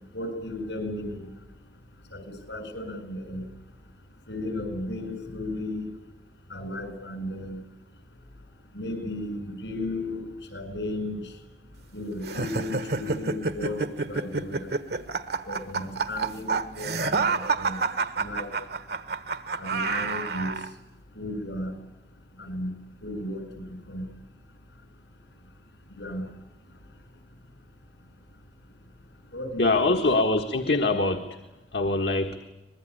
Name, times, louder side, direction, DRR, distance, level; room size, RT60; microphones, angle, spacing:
voice 1, 0.1-1.3 2.1-2.2 2.5-3.5 4.3-5.9 6.5-7.6 8.7-11.3 11.9-14.7 15.4-17.8 18.2-18.5 19.6-20.5 21.2-21.7 22.4-22.7 23.0-24.1 25.9-26.2 29.3-30.0, left 1 dB, 80° left, 8 dB, 7.4 m, -34 dB
sound 1, 12.2-20.7, right 4 dB, 65° right, 1.4 m, -28 dB
voice 2, 29.6-31.4 31.7-32.4, left 2 dB, 65° left, 4 dB, 1.6 m, -24 dB
24.5 x 21.0 x 9.9 m, 1.0 s
head